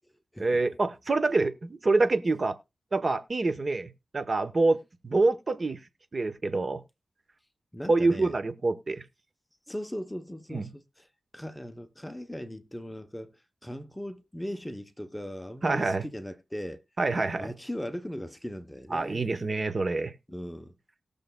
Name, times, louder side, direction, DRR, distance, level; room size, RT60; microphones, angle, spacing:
voice 1, 0.4-2.6 2.9-5.8 6.1-6.8 7.9-9.0 10.5-10.7 15.6-16.0 17.0-17.5 18.9-20.1, right 3 dB, 40° right, 0.9 m, -26 dB
voice 2, 7.7-8.4 9.7-11.1 11.3-13.3 13.6-16.8 17.3-19.2 20.3-20.7, equal, 5° left, 0.7 m, -38 dB
19.5 x 6.7 x 2.2 m
wide cardioid pair, 120°, 0 cm